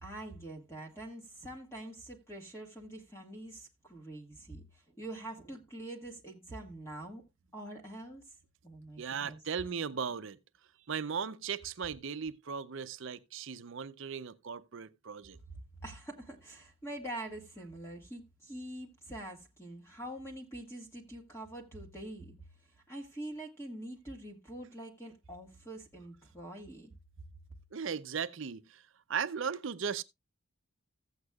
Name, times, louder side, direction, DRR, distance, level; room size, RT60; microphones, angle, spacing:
voice 1, 0.0-7.2 7.5-8.3 8.6-9.4 15.5-22.3 22.7-26.9, right 1 dB, 10° left, 1.6 m, -45 dB
voice 2, 9.0-10.4 10.9-15.4 27.7-28.8 29.1-30.0, right 6 dB, 60° right, 0.5 m, -37 dB
15.5 x 8.0 x 2.3 m
head